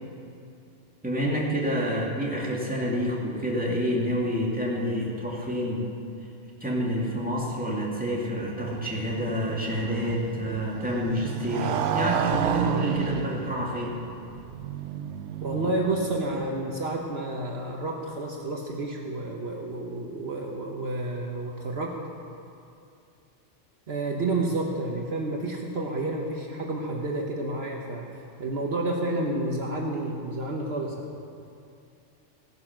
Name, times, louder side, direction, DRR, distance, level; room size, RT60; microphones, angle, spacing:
voice 1, 1.0-5.8 6.6-13.9, equal, 5° right, -4 dB, 2.5 m, -28 dB
Motorcycle, 8.3-16.5, right 9 dB, 80° right, 0.9 m, -32 dB
voice 2, 15.4-21.9 23.9-31.1, right 2 dB, 60° right, 0 dB, 1.4 m, -30 dB
17.0 x 9.6 x 6.1 m, 2.5 s
omnidirectional pair, 1.2 m